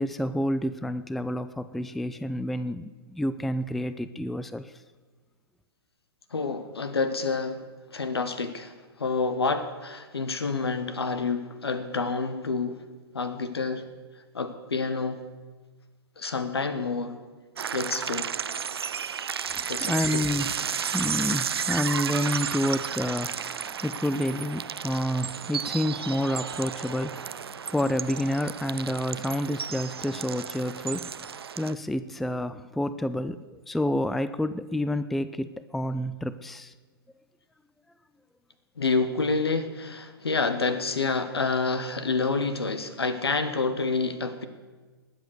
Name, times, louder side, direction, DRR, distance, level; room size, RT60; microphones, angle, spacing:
voice 1, 0.0-4.7 19.5-36.7, left 1 dB, ahead, 14 dB, 0.3 m, -29 dB
voice 2, 6.3-7.6 7.9-12.8 13.1-13.8 14.3-15.2 16.2-17.2 17.7-18.3 19.7-20.2 38.8-44.5, left 4 dB, 80° left, 11 dB, 1.5 m, -28 dB
sound 1, 17.6-31.7, right 7 dB, 75° right, 0.5 m, -33 dB
20.0 x 8.0 x 6.6 m, 1.3 s
figure-of-eight pair, 115°, 13 cm